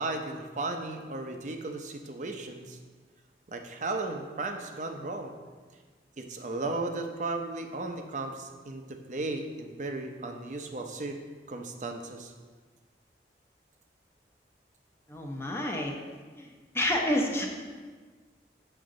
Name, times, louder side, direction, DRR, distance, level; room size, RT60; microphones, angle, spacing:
voice 1, 0.0-2.8 3.5-5.3 6.2-11.2 11.5-12.3, right 2 dB, 45° right, 5 dB, 0.7 m, -35 dB
voice 2, 15.1-15.9 16.4-16.5 16.7-17.5, left 1 dB, 15° left, 1 dB, 0.7 m, -28 dB
8.0 x 6.4 x 3.8 m, 1.5 s
head